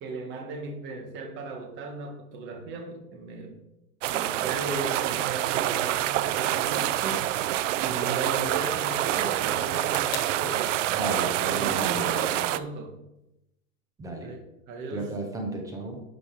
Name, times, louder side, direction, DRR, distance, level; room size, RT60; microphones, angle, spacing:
voice 1, 0.0-3.6 4.0-7.3 7.8-10.8 11.5-12.9 14.2-15.1, right 3 dB, 25° right, 3 dB, 1.6 m, -36 dB
sound 1, 4.0-12.6, right 13 dB, 60° right, 0.6 m, -27 dB
voice 2, 10.9-12.2 14.0-14.4 14.9-16.0, right 2 dB, 10° right, 3 dB, 0.8 m, -34 dB
sound 2, 13.1-13.8, left 9 dB, 25° left, 0.9 m, -49 dB
11.5 x 5.2 x 4.8 m, 0.90 s
supercardioid pair, 170°, 42 cm